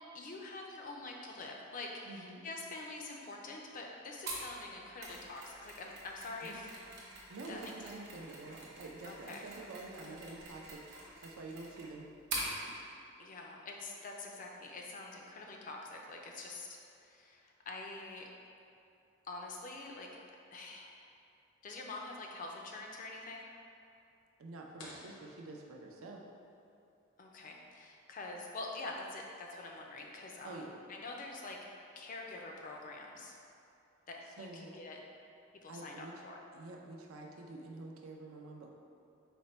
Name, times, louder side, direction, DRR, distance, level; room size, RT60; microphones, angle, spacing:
voice 1, 0.1-6.7 7.5-7.7 9.0-9.4 13.2-18.3 19.3-20.1 20.5-21.1 21.6-23.5 27.2-30.6 30.9-31.6 32.0-33.3 34.1-35.0 35.6-36.4, left 3 dB, 40° left, 0 dB, 0.3 m, -45 dB
voice 2, 2.0-2.4 6.4-6.6 7.3-12.0 12.6-12.7 24.4-26.2 30.4-30.7 34.3-34.8 35.7-36.1 36.5-38.7, right 2 dB, 85° right, 0 dB, 0.5 m, -48 dB
Mechanisms, 4.3-12.5, right 2 dB, 50° right, 0.7 m, -45 dB
sound 1, 24.8-26.5, left 2 dB, 80° left, 0.6 m, -54 dB
4.2 x 2.2 x 4.1 m, 2.7 s
head